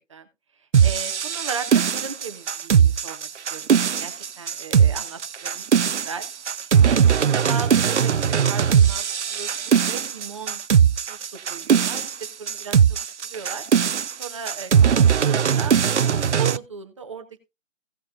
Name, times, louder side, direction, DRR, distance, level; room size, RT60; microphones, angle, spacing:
sound 1, 0.7-16.6, right 7 dB, 65° right, 0.5 m, -19 dB
voice 1, 0.8-5.6 5.9-6.3 6.6-10.6 11.1-12.1 12.4-13.6 14.1-15.7 16.1-17.4, right 5 dB, 25° right, 7 dB, 1.0 m, -36 dB
16.5 x 6.2 x 2.7 m, 0.24 s
figure-of-eight pair, 155°, 38 cm